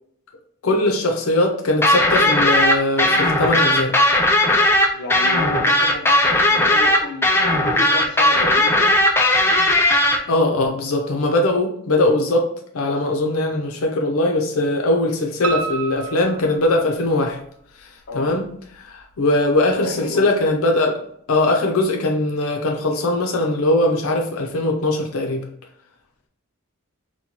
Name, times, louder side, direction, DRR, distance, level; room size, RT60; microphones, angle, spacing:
voice 1, 0.6-3.9 10.3-12.5 12.7-17.4 18.1-18.5 18.8-21.0 21.3-25.4, left 2 dB, 90° left, 1 dB, 0.6 m, -20 dB
sound 1, 1.8-10.2, left 1 dB, 10° left, 0.4 m, -17 dB
voice 2, 4.9-8.9 18.1-18.3 19.7-20.3, left 2 dB, 55° left, 2 dB, 0.7 m, -31 dB
Piano, 15.4-17.4 17.8-18.6 19.0-19.1 19.5-19.6 19.9-20.0, right 5 dB, 90° right, 0.4 m, -30 dB
4.2 x 2.2 x 2.8 m, 0.66 s
head